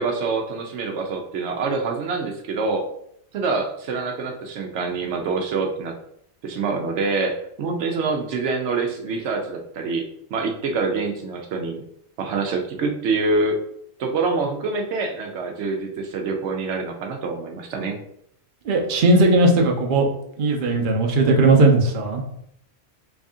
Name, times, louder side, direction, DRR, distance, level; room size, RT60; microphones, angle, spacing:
voice 1, 0.0-2.8 3.3-5.9 6.4-11.8 12.2-13.6 14.0-18.0, right 3 dB, 90° right, 3 dB, 0.9 m, -26 dB
voice 2, 18.6-20.1 20.4-22.2, right 2 dB, 55° right, 1 dB, 0.8 m, -17 dB
3.3 x 2.6 x 3.5 m, 0.71 s
omnidirectional pair, 1.1 m